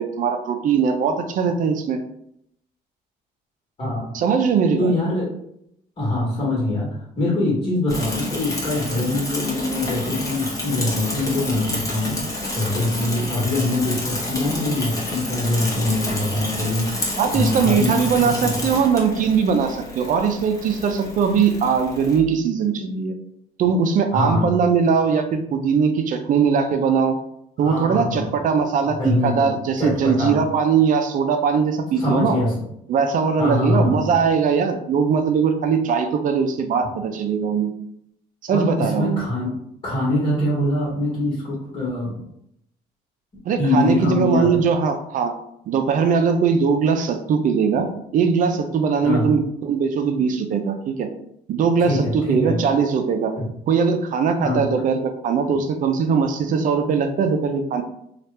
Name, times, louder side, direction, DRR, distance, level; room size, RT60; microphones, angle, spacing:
voice 1, 0.0-2.0 4.1-4.9 17.2-23.1 23.6-27.2 27.6-32.4 32.9-37.7 38.4-39.2 43.4-45.3 45.7-51.1 51.5-53.3 53.7-57.8, right 6 dB, 50° right, 6 dB, 0.5 m, -20 dB
voice 2, 3.8-4.1 4.8-5.3 6.0-12.2 12.5-16.9 17.3-18.5 24.1-24.5 27.6-28.3 28.9-29.5 29.8-30.4 32.0-32.5 33.4-34.0 38.5-39.6 39.8-42.2 43.6-44.6 49.0-49.3 51.8-52.6 53.4-53.5 54.4-54.7, left 2 dB, 35° left, -7 dB, 1.4 m, -23 dB
Bicycle / Mechanisms, 7.9-22.2, left 1 dB, 20° left, 0.9 m, -29 dB
2.8 x 2.4 x 3.2 m, 0.75 s
cardioid pair, 110°, 17 cm